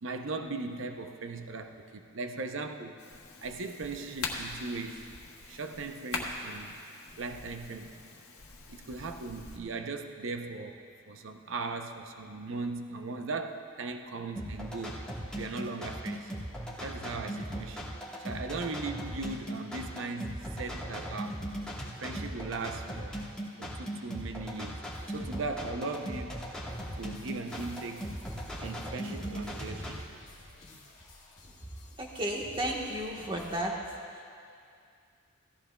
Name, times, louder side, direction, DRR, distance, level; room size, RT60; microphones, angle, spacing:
voice 1, 0.0-3.0 3.4-5.0 5.5-6.7 7.2-7.9 8.7-10.8 11.1-15.0 15.3-16.3 16.8-17.9 18.2-21.4 22.0-23.2 23.6-24.8 25.1-26.4 27.0-28.1 28.6-30.2, right 3 dB, 60° right, 6 dB, 0.6 m, -38 dB
sound 1, 3.0-9.6, left 3 dB, 85° left, 1.4 m, -42 dB
sound 2, 14.3-30.0, equal, 5° left, 1.3 m, -39 dB
sound 3, 24.9-33.6, left 2 dB, 30° left, 1.8 m, -55 dB
voice 2, 32.0-33.8 34.1-34.3, right 1 dB, 25° right, -1 dB, 1.3 m, -33 dB
17.0 x 14.5 x 2.3 m, 2.3 s
head